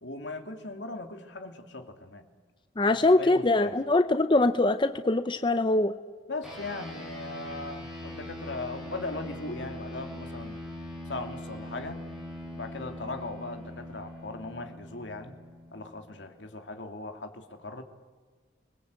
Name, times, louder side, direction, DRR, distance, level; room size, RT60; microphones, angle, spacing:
voice 1, 0.0-2.2 2.9-3.8 6.3-10.6 11.1-12.0 12.5-15.3 15.7-17.8, left 2 dB, 80° left, 6 dB, 2.6 m, -39 dB
voice 2, 2.8-5.9, left 2 dB, 25° left, 10 dB, 0.7 m, -23 dB
sound 1, 6.4-16.2, left 1 dB, 5° right, 7.9 m, -42 dB
29.5 x 21.0 x 8.3 m, 1.5 s
head